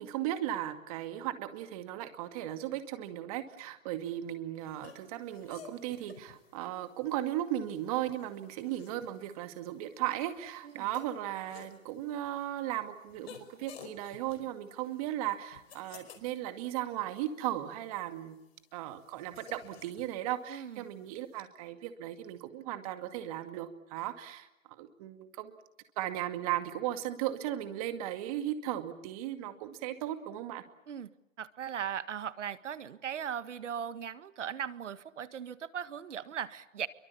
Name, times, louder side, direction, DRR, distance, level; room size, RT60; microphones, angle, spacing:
voice 1, 0.0-18.4 18.7-25.6 26.0-30.6, right 13 dB, 30° right, 9 dB, 2.2 m, -36 dB
sound 1, 4.6-21.4, left 7 dB, 50° left, 4.9 m, -56 dB
voice 2, 20.5-20.8 30.9-31.1 31.4-36.9, right 8 dB, 65° right, 13 dB, 1.8 m, -38 dB
28.5 x 24.0 x 7.1 m, 0.94 s
hypercardioid pair, 160°, 39 cm